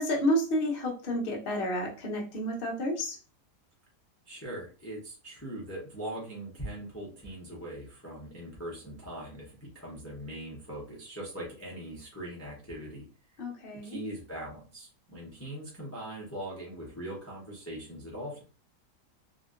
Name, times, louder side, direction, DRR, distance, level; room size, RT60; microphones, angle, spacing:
voice 1, 0.0-3.2 13.4-14.0, equal, 45° left, -1 dB, 0.8 m, -30 dB
voice 2, 4.3-13.1 13.8-18.4, right 1 dB, 20° left, -4 dB, 0.4 m, -41 dB
2.9 x 2.7 x 2.4 m, 0.36 s
omnidirectional pair, 1.8 m